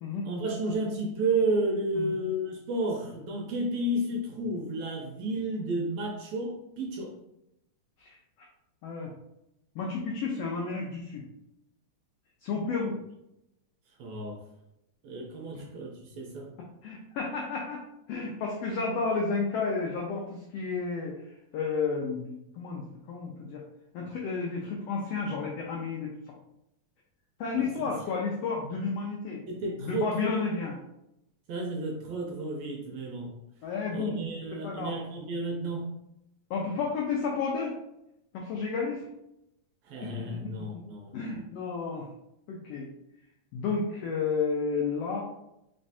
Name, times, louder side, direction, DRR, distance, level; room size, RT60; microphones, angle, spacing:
voice 1, 0.3-7.1 12.9-13.0 14.0-14.4 15.0-16.5 27.6-27.9 29.5-30.3 31.5-33.3 33.9-35.9 39.9-41.4, right 2 dB, 80° right, 0 dB, 1.7 m, -32 dB
voice 2, 9.7-11.2 12.4-12.9 16.8-17.8 18.1-23.6 23.9-26.3 27.4-29.4 29.8-30.8 33.6-34.2 34.5-34.9 36.5-37.7 38.3-39.1 40.2-40.8 41.1-42.1 42.5-42.9 43.5-45.2, left 4 dB, 85° left, -1 dB, 1.4 m, -32 dB
4.3 x 3.1 x 2.7 m, 0.84 s
omnidirectional pair, 3.4 m